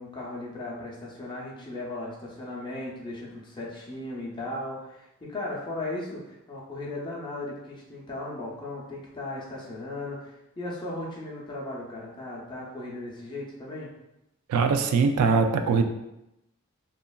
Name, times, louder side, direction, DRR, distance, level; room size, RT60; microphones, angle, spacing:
voice 1, 0.0-13.9, left 2 dB, 20° left, -4 dB, 0.5 m, -37 dB
voice 2, 14.5-15.8, right 5 dB, 85° right, 8 dB, 0.3 m, -22 dB
2.9 x 2.4 x 2.3 m, 0.90 s
head